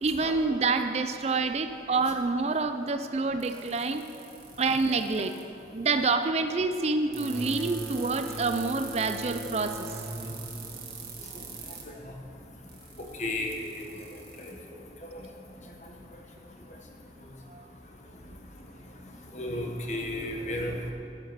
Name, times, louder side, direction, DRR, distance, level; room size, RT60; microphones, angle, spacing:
voice 1, 0.0-4.2 4.6-5.3 5.7-9.9 17.5-17.7, right 3 dB, 35° right, 9 dB, 0.4 m, -27 dB
sound 1, 3.4-5.4 7.1-11.8 12.7-14.5, right 8 dB, 55° right, 1.8 m, -44 dB
sound 2, 7.1-12.6, equal, ahead, 0.9 m, -40 dB
voice 2, 13.2-13.7 14.5-14.6 19.3-20.9, left 1 dB, 40° left, 2 dB, 1.3 m, -32 dB
10.5 x 9.7 x 6.0 m, 2.6 s
head